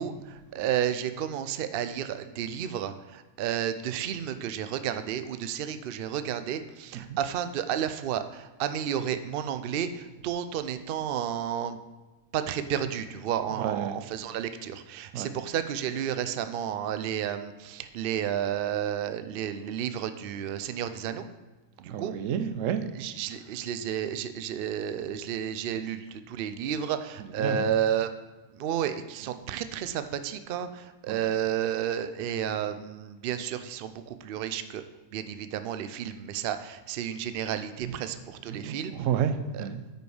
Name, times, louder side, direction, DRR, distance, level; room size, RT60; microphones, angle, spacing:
voice 1, 0.0-11.8 12.3-21.3 21.8-22.1 22.9-28.1 28.5-34.8 35.1-38.9 39.5-39.6, right 9 dB, 85° right, 10 dB, 0.5 m, -31 dB
voice 2, 13.6-14.0 15.1-15.3 21.9-22.8 27.4-27.7 31.1-31.2 38.5-39.8, right 8 dB, 70° right, 9 dB, 0.9 m, -30 dB
9.0 x 5.3 x 4.9 m, 1.2 s
omnidirectional pair, 1.5 m